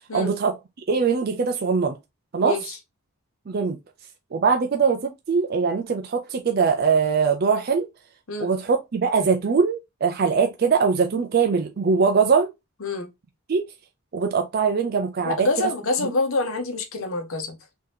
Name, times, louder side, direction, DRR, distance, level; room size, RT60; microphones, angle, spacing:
voice 1, 0.1-0.5 0.9-2.0 2.3-2.6 3.5-3.8 4.3-7.9 8.4-12.5 13.5-13.6 14.1-15.7 16.0-16.1, right 5 dB, 45° right, 0.4 m, -22 dB
voice 2, 2.4-2.8 8.3-8.5 12.8-13.1 15.2-17.6, left 3 dB, 70° left, 0.9 m, -26 dB
3.7 x 2.8 x 3.3 m
head